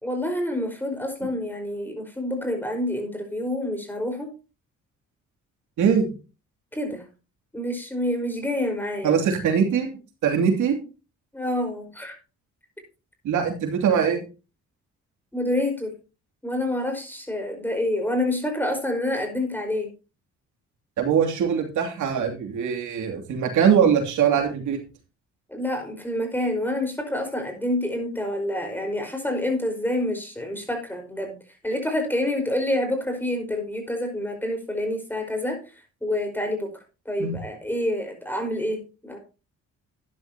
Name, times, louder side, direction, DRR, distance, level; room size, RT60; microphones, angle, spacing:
voice 1, 0.0-4.3 6.7-7.0 7.5-9.2 11.3-12.2 15.3-15.9 16.4-19.9 25.5-31.4 31.6-35.6 36.0-36.7 37.0-39.2, left 1 dB, 5° left, 4 dB, 4.8 m, -27 dB
voice 2, 5.8-6.1 9.0-9.9 10.2-10.8 13.2-14.2 21.0-24.8 37.2-37.3, right 7 dB, 75° right, 3 dB, 2.7 m, -22 dB
12.5 x 10.0 x 2.9 m, 0.32 s
cardioid pair, 90°, 30 cm